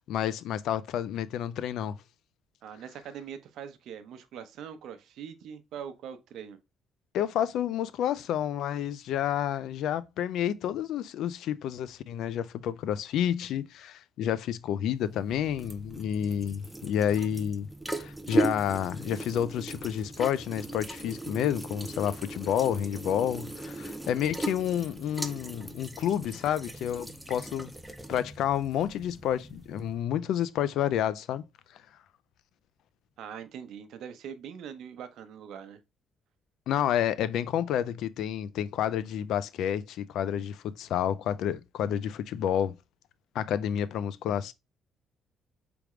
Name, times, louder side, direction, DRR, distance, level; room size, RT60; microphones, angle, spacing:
voice 1, 0.1-1.9 7.1-27.7 28.1-31.4 36.7-42.7 43.3-44.5, left 10 dB, 75° left, 0.4 m, -30 dB
voice 2, 2.6-6.6 33.2-35.8, right 8 dB, 70° right, 0.7 m, -42 dB
sound 1, 15.0-30.0, right 2 dB, 5° right, 0.5 m, -37 dB
4.8 x 3.5 x 3.1 m
cardioid pair, 130°, 0 cm